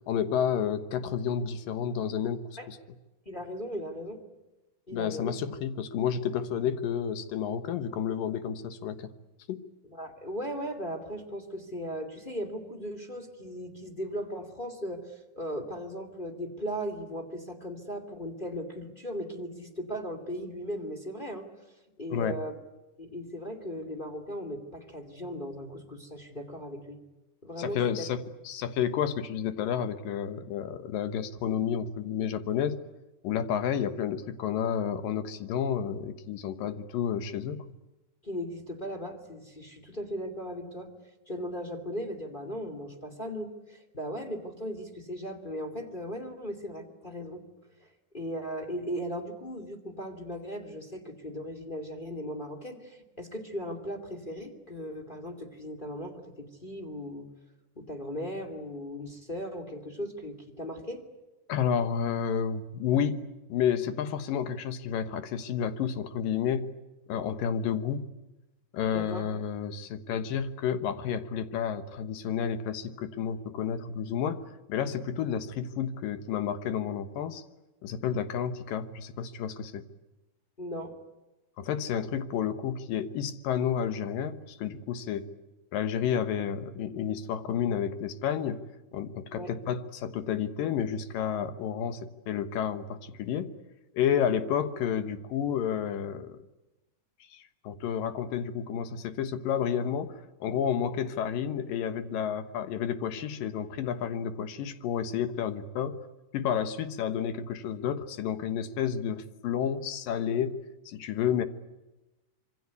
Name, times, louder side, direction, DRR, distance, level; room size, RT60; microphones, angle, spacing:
voice 1, 0.1-2.4 2.7-2.8 4.9-9.1 9.5-9.6 22.1-22.4 27.6-32.8 33.2-37.7 61.5-66.7 67.1-68.0 68.7-74.4 74.7-77.4 77.8-79.8 81.6-85.3 85.7-88.6 88.9-93.5 93.9-96.4 97.3-106.0 106.3-111.4, left 8 dB, 70° left, 10 dB, 2.9 m, -30 dB
voice 2, 3.3-4.2 4.9-5.3 9.9-21.5 22.0-22.5 23.0-27.0 27.4-28.1 38.2-40.9 41.3-47.4 47.8-47.9 48.1-57.3 57.8-61.0 68.9-69.3 80.6-81.0 89.3-89.5, equal, 15° left, 3 dB, 2.2 m, -37 dB
26.5 x 24.5 x 8.3 m, 1.0 s
omnidirectional pair, 4.2 m